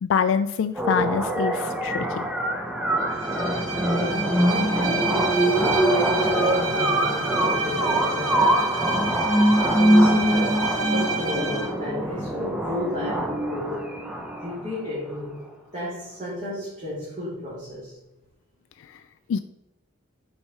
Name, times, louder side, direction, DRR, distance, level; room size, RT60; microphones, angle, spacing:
voice 1, 0.0-2.2 18.9-19.0 19.3-19.4, left 6 dB, 70° left, 10 dB, 0.3 m, -25 dB
sound 1, 0.8-14.7, right 1 dB, 5° right, 0.7 m, -23 dB
Bowed string instrument, 3.1-11.7, right 4 dB, 85° right, 1.5 m, -29 dB
voice 2, 3.9-9.0 9.7-13.9 14.4-15.4 15.7-18.0, left 1 dB, 40° right, -7 dB, 1.8 m, -33 dB
6.3 x 4.1 x 4.7 m, 0.94 s
head